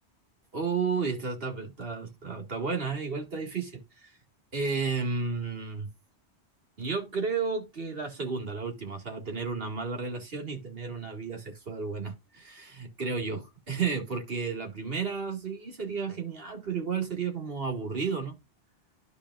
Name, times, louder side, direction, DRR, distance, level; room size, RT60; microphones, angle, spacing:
voice 1, 0.5-4.1 4.5-5.9 6.8-18.4, right 5 dB, 55° right, 2.1 m, -32 dB
12.0 x 5.0 x 2.4 m
omnidirectional pair, 1.2 m